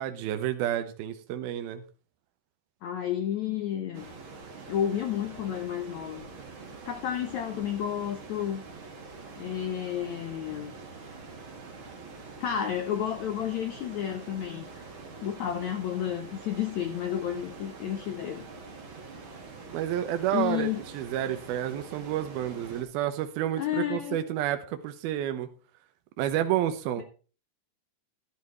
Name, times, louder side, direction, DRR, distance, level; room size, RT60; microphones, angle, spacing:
voice 1, 0.0-1.8 19.7-25.5 26.2-27.0, right 11 dB, 75° right, 8 dB, 2.9 m, -30 dB
voice 2, 2.8-4.1 4.7-6.2 6.9-8.6 9.4-10.7 12.4-14.9 15.2-18.5 18.8-18.9 20.3-20.8 23.6-24.2, left 10 dB, 70° left, 8 dB, 1.7 m, -31 dB
sound 1, 3.9-22.8, right 4 dB, 35° right, 2.8 m, -45 dB
13.5 x 12.0 x 3.1 m, 0.36 s
omnidirectional pair, 4.5 m